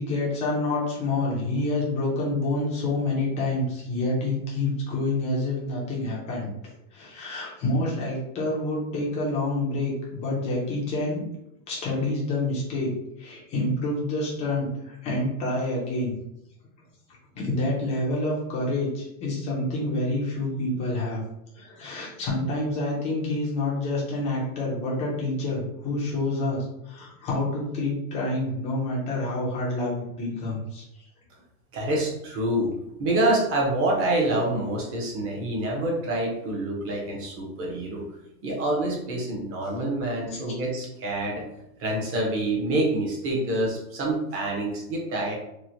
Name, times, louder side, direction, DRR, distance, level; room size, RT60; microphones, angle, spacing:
voice 1, 0.0-6.5 6.9-11.2 11.7-12.9 13.2-16.1 17.3-21.2 21.5-30.8 40.3-40.4, left 2 dB, 15° left, -4 dB, 0.3 m, -28 dB
voice 2, 31.7-32.7 33.0-38.0 38.4-41.4 41.8-45.4, right 1 dB, 30° right, -2 dB, 0.7 m, -26 dB
3.0 x 2.1 x 2.6 m, 0.84 s
supercardioid pair, 135°, 48 cm